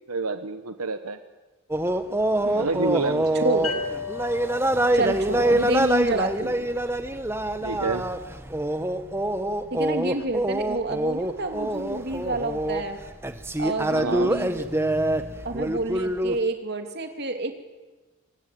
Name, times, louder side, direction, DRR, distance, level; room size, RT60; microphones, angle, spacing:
voice 1, 0.1-1.2 2.5-3.4 7.6-8.1 13.9-14.4, right 3 dB, 85° right, 9 dB, 1.1 m, -28 dB
sound 1, 1.7-16.4, right 1 dB, 10° right, 1.2 m, -25 dB
voice 2, 2.4-3.0 3.3-3.8 4.9-6.7 9.7-13.0 13.6-14.7 15.4-17.5, right 2 dB, 50° right, 5 dB, 2.8 m, -29 dB
sound 2, 3.6-7.1, left 5 dB, 75° left, 2.0 m, -37 dB
25.0 x 21.5 x 9.3 m, 1.2 s
head